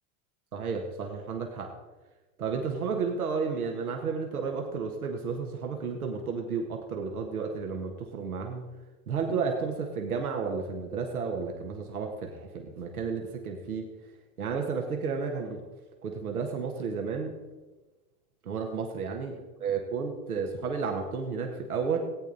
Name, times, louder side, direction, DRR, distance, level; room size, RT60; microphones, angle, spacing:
voice 1, 0.5-1.7 2.4-8.7 9.1-13.8 14.4-15.6 16.0-17.3 18.4-19.3 19.6-22.0, right 5 dB, 90° right, 2 dB, 1.7 m, -32 dB
17.5 x 9.1 x 4.1 m, 1.2 s
hypercardioid pair, 90°, 43 cm